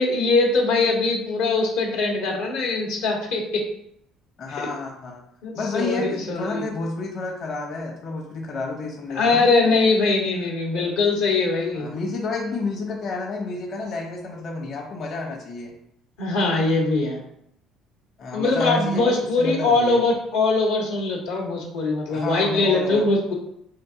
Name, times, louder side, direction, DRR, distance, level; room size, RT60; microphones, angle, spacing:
voice 1, 0.0-3.6 4.5-4.7 5.4-6.6 9.1-11.9 16.2-17.2 18.3-23.3, left 3 dB, 85° left, -2 dB, 1.0 m, -22 dB
voice 2, 4.4-5.2 5.5-9.5 11.7-15.7 18.2-20.0 22.1-23.0, left 3 dB, 55° left, -1 dB, 0.9 m, -30 dB
3.8 x 2.6 x 3.7 m, 0.75 s
hypercardioid pair, 65°, 0 cm